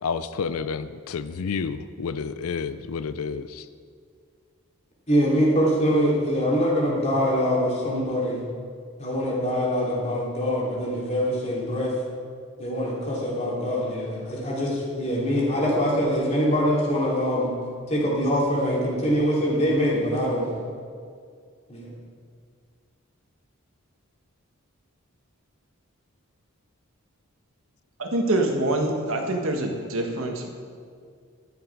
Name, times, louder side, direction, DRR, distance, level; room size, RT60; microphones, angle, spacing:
voice 1, 0.0-3.7, left 5 dB, 80° left, 13 dB, 0.4 m, -30 dB
voice 2, 5.1-8.4 9.0-11.9 12.6-17.5 17.9-20.5 21.7-21.9, equal, 30° left, -4 dB, 2.9 m, -24 dB
voice 3, 28.0-30.5, right 2 dB, 70° right, 2 dB, 1.6 m, -25 dB
12.0 x 10.5 x 4.7 m, 2.1 s
head